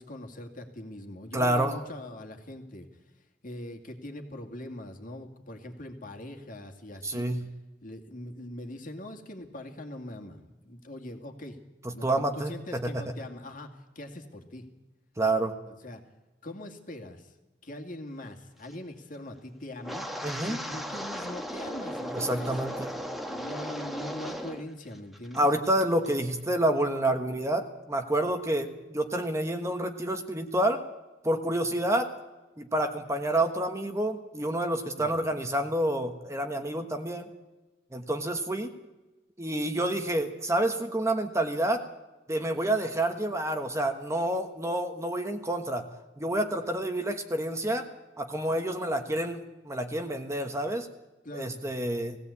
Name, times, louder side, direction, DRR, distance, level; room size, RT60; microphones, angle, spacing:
voice 1, 0.0-2.9 3.4-7.4 7.8-11.6 11.9-14.6 15.7-16.0 16.4-17.4 17.6-20.1 20.4-22.5 23.3-25.5 35.0-35.2 51.2-51.9, left 1 dB, 50° left, 4 dB, 2.4 m, -42 dB
voice 2, 1.3-1.8 7.0-7.5 12.0-13.0 15.2-15.5 20.2-20.6 22.1-22.9 25.3-30.8 31.2-32.1 32.6-37.3 37.9-38.7 39.4-41.9 42.3-45.8 46.2-47.9 48.2-50.9 51.3-52.2, right 1 dB, 15° right, 6 dB, 1.3 m, -28 dB
Wind, 19.8-24.7 24.9-25.4 25.8-26.1, equal, ahead, 1.4 m, -36 dB
19.0 x 16.5 x 8.5 m, 1.1 s
head